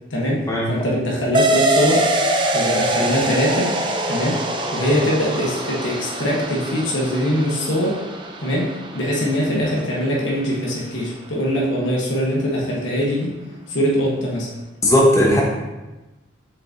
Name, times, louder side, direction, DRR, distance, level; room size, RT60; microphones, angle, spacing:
voice 1, 0.1-2.1 2.5-3.8 4.1-4.4 4.7-8.0 8.4-13.3 13.7-14.5, equal, 70° left, -4 dB, 1.2 m, -22 dB
sound 1, 1.3-10.4, right 1 dB, 25° right, 0.5 m, -24 dB
voice 2, 14.8-15.4, left 1 dB, 15° left, -2 dB, 1.0 m, -15 dB
7.0 x 5.1 x 2.7 m, 1.1 s
head